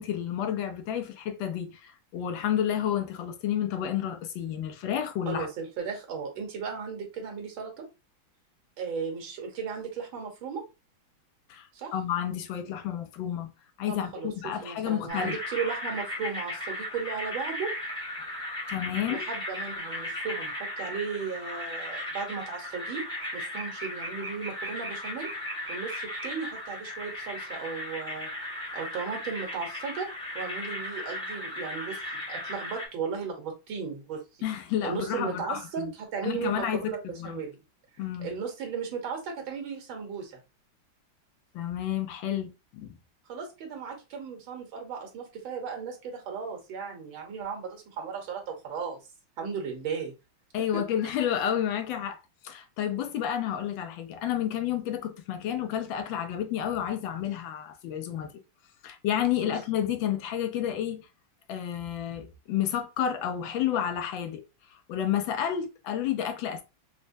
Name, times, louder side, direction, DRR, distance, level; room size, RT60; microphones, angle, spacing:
voice 1, 0.0-5.5 11.5-13.5 13.8-15.4 18.7-19.3 34.4-35.9 36.2-37.4 38.0-38.3 41.5-42.9 50.5-58.3 58.8-61.1 61.5-64.4 64.7-66.6, left 10 dB, 80° left, 1.4 m, -30 dB
voice 2, 5.3-7.9 8.8-10.7 11.7-11.9 13.9-17.7 19.1-25.3 25.7-28.5 28.7-30.1 30.4-32.0 32.3-34.2 34.8-37.6 38.2-40.4 43.3-49.0 49.4-50.1 50.7-50.8 59.3-59.6, right 5 dB, 85° right, 1.8 m, -36 dB
sound 1, 15.1-32.9, left 1 dB, 5° left, 0.6 m, -36 dB
4.3 x 2.1 x 2.5 m
omnidirectional pair, 2.1 m